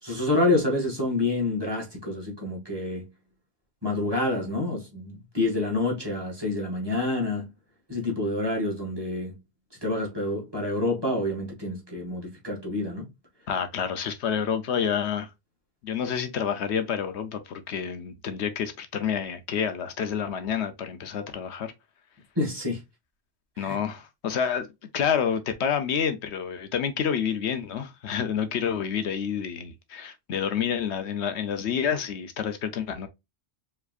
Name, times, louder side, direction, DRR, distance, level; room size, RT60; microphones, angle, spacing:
voice 1, 0.0-3.1 3.8-7.5 7.9-9.4 9.8-13.1 22.4-22.8 23.6-23.8, left 2 dB, 20° right, 1.9 m, -27 dB
voice 2, 13.5-15.3 15.8-21.7 23.6-24.7 24.9-33.1, left 7 dB, 75° left, 1.0 m, -28 dB
4.7 x 3.4 x 2.4 m
omnidirectional pair, 1.1 m